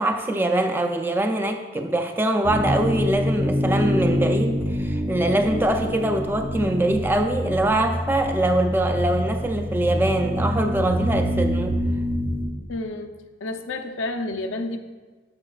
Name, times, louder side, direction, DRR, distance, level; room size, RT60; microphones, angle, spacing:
voice 1, 0.0-11.8, right 1 dB, 10° right, 5 dB, 0.3 m, -23 dB
sound 1, 2.4-12.5, equal, 70° right, 1.9 m, -26 dB
voice 2, 12.7-13.1 13.4-14.8, left 2 dB, 90° left, 5 dB, 0.5 m, -30 dB
9.5 x 7.1 x 2.3 m, 1.3 s
head